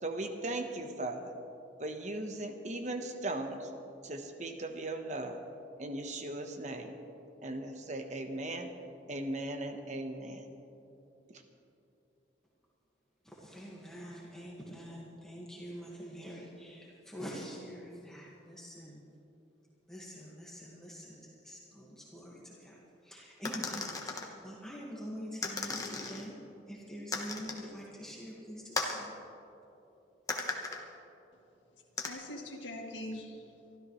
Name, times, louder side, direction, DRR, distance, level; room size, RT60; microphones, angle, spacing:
voice 1, 0.0-1.3 1.8-3.7 4.0-5.4 5.8-6.9 7.4-8.7 9.1-10.5 11.3-11.4, right 1 dB, 40° right, 6 dB, 1.1 m, -38 dB
voice 2, 13.2-19.0 19.9-26.4 26.7-29.1, equal, 5° left, -5 dB, 1.6 m, -45 dB
sound 1, 23.4-24.3 25.4-26.2 27.1-27.7 28.7-29.0 30.3-30.8 32.0-32.1, left 3 dB, 20° left, 1.1 m, -36 dB
voice 3, 31.3-33.8, left 1 dB, 85° left, 1 dB, 2.0 m, -44 dB
24.0 x 13.5 x 3.2 m, 2.8 s
head